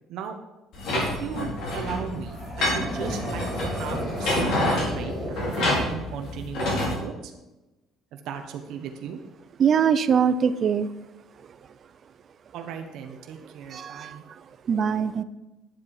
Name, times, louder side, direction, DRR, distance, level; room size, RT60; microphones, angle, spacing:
sound 1, 0.7-6.9, left 1 dB, 60° left, 4.4 m, -28 dB
voice 1, 0.9-7.3 8.1-9.2 12.5-14.2, right 7 dB, 65° right, 4 dB, 1.1 m, -36 dB
sound 2, 2.2-6.1, equal, 15° left, 3.8 m, -35 dB
voice 2, 9.6-10.9 13.7-14.2 14.7-15.2, right 7 dB, 35° right, 13 dB, 0.6 m, -22 dB
10.5 x 7.7 x 4.8 m, 1.0 s
cardioid pair, 150°, 0 cm